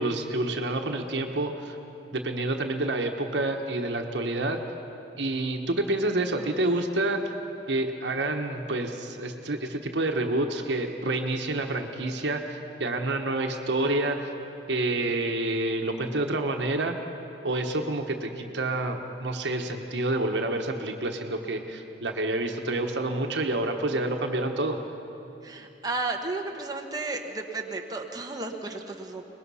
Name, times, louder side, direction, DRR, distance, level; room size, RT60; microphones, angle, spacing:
voice 1, 0.0-1.8 2.1-4.6 5.2-7.2 7.7-14.3 14.7-17.0 17.4-24.8, right 2 dB, 75° right, 4 dB, 1.2 m, -28 dB
voice 2, 25.4-29.2, right 3 dB, 20° right, 2 dB, 1.1 m, -33 dB
23.0 x 20.0 x 5.6 m, 2.8 s
head